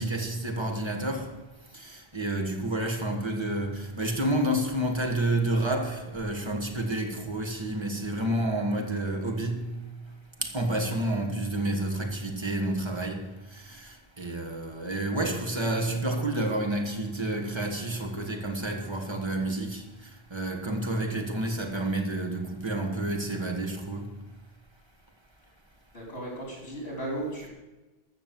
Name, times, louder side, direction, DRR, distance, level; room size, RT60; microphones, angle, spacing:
voice 1, 0.0-1.3 1.7-9.8 10.4-19.8 20.3-24.1, right 1 dB, 25° right, 1.6 m, -29 dB
voice 2, 25.9-27.5, right 1 dB, 70° left, 4.1 m, -35 dB
14.5 x 6.3 x 7.5 m
omnidirectional pair, 1.1 m